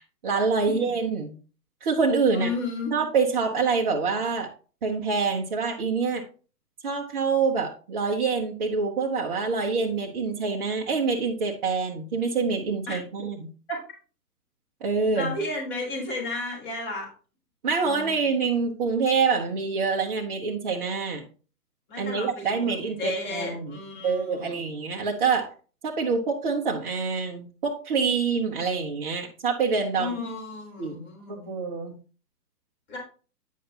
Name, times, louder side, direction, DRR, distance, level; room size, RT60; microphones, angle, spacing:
voice 1, 0.0-1.3 1.8-2.5 2.9-4.5 4.8-6.2 6.8-13.5 14.8-15.3 17.6-21.2 22.0-25.5 25.8-30.1 30.8-31.1 31.5-32.0, right 5 dB, 30° right, -2 dB, 0.9 m, -26 dB
voice 2, 2.3-2.9 12.9-13.0 13.7-13.8 15.1-17.1 17.8-18.3 21.9-24.6 30.0-31.5 32.9-33.0, left 2 dB, 30° left, -2 dB, 3.8 m, -33 dB
9.3 x 6.5 x 2.9 m, 0.38 s
figure-of-eight pair, 130°, 49 cm